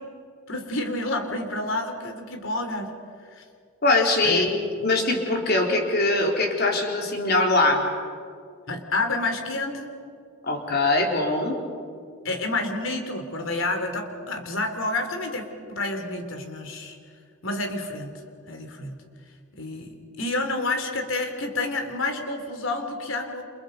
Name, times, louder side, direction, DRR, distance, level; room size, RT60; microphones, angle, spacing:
voice 1, 0.5-2.9 3.3-3.4 4.2-4.5 8.7-9.9 12.2-17.0 17.4-18.1 18.5-19.0 19.6-23.4, left 2 dB, 70° left, 5 dB, 3.2 m, -29 dB
voice 2, 3.8-4.5 4.8-7.9 10.4-11.6, left 2 dB, 50° left, 1 dB, 3.8 m, -22 dB
29.0 x 28.0 x 5.3 m, 2.2 s
head